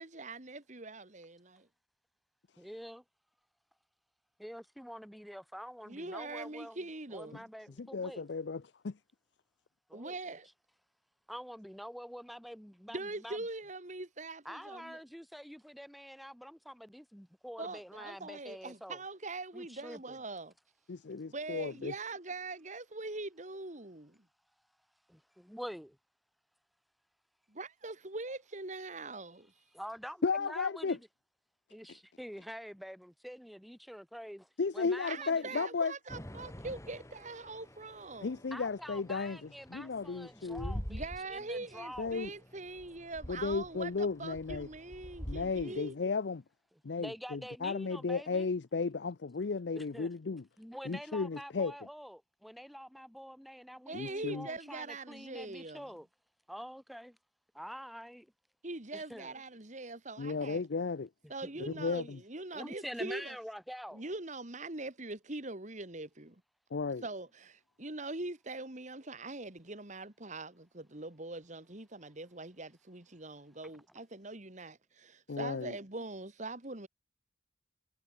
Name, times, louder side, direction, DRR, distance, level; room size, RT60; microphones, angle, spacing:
voice 1, 0.0-1.7 5.9-7.5 9.9-10.5 12.9-15.0 17.6-20.5 21.3-24.2 27.5-29.5 35.1-38.4 40.9-45.9 53.9-55.9 58.6-60.6 61.3-63.4 63.9-66.4 67.0-76.9, right 2 dB, 40° right, 2.5 m, -42 dB
voice 2, 2.6-3.0 4.4-6.8 7.1-8.3 9.9-10.2 11.3-13.4 14.4-19.0 19.5-20.2 25.1-26.0 29.7-31.1 31.7-34.5 34.7-35.6 38.5-42.2 45.7-45.8 47.0-48.5 49.7-50.1 50.6-56.1 56.5-57.2 57.5-58.3 58.9-59.3 60.3-60.4 61.2-61.9 62.5-64.0, equal, ahead, 3.9 m, -46 dB
voice 3, 7.8-8.9 21.1-21.9 30.2-31.0 34.6-35.9 38.2-40.8 42.0-42.3 43.3-44.7 45.3-46.4 46.8-50.4 50.8-51.7 53.9-54.5 60.2-61.1 61.7-62.2 66.7-67.0 75.3-75.7, left 4 dB, 65° left, 0.6 m, -34 dB
sound 1, 36.1-45.9, equal, 15° left, 3.8 m, -47 dB
head